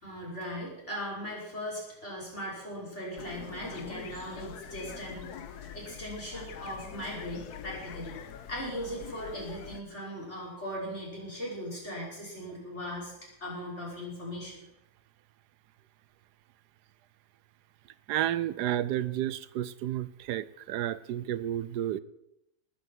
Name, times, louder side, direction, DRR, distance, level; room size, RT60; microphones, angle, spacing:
voice 1, 0.0-8.2 8.5-13.1 13.4-14.7, equal, 40° left, -5 dB, 6.1 m, -39 dB
sound 1, 3.2-9.8, left 9 dB, 70° left, 1.4 m, -44 dB
voice 2, 18.1-22.0, right 12 dB, 80° right, 15 dB, 1.2 m, -31 dB
19.0 x 6.9 x 7.7 m, 0.84 s
omnidirectional pair, 1.8 m